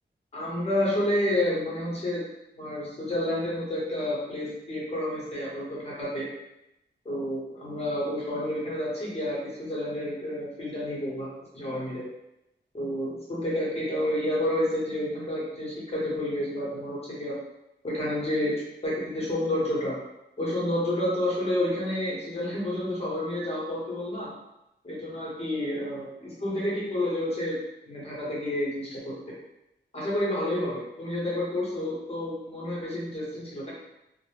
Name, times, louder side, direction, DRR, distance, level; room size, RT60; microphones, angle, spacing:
voice 1, 0.3-2.2 2.6-6.3 7.0-11.3 11.5-12.1 12.7-17.4 17.8-19.9 20.4-24.3 24.8-27.6 27.8-29.3 29.9-33.7, left 1 dB, 30° left, -6 dB, 0.9 m, -30 dB
2.1 x 2.1 x 3.1 m, 0.89 s
wide cardioid pair, 160°, 19 cm